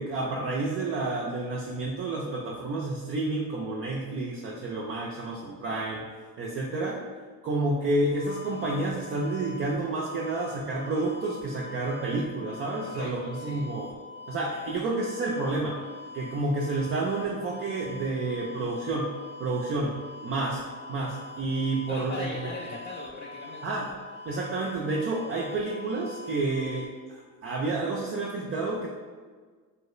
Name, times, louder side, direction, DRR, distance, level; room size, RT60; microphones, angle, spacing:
voice 1, 0.0-6.1 6.4-7.0 7.4-13.9 14.3-15.8 16.1-19.1 19.4-22.5 23.6-23.9 24.3-28.9, right 2 dB, 35° right, -2 dB, 0.4 m, -30 dB
sound 1, 8.0-26.9, left 3 dB, 80° left, 1.1 m, -44 dB
voice 2, 12.8-13.7 21.9-23.6, left 2 dB, 45° left, -3 dB, 0.5 m, -39 dB
3.1 x 2.2 x 3.0 m, 1.5 s
hypercardioid pair, 60°, 42 cm